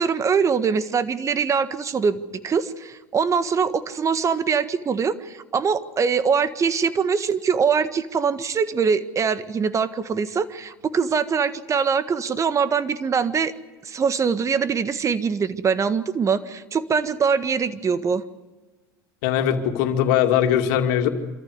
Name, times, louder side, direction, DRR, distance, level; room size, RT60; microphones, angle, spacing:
voice 1, 0.0-13.5 13.8-18.2, right 6 dB, 30° right, 12 dB, 1.6 m, -23 dB
voice 2, 19.2-21.1, left 10 dB, 75° left, 5 dB, 2.6 m, -20 dB
26.5 x 14.0 x 9.6 m, 1.2 s
hypercardioid pair, 85°, 10 cm